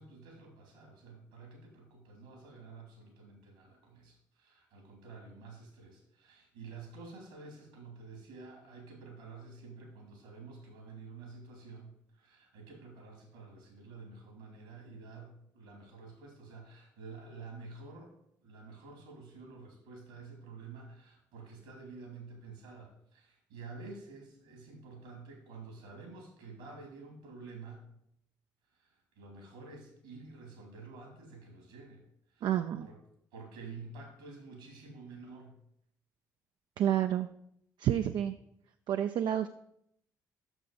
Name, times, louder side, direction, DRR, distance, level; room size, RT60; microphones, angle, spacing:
voice 1, 0.0-18.2 18.4-27.9 28.7-32.9 33.3-35.6, right 4 dB, 80° right, 2 dB, 2.5 m, -50 dB
voice 2, 32.4-32.9 36.8-37.3 37.8-38.3 38.9-39.5, right 10 dB, 65° right, 8 dB, 0.4 m, -29 dB
6.6 x 6.2 x 6.7 m, 0.74 s
hypercardioid pair, 45°, 9 cm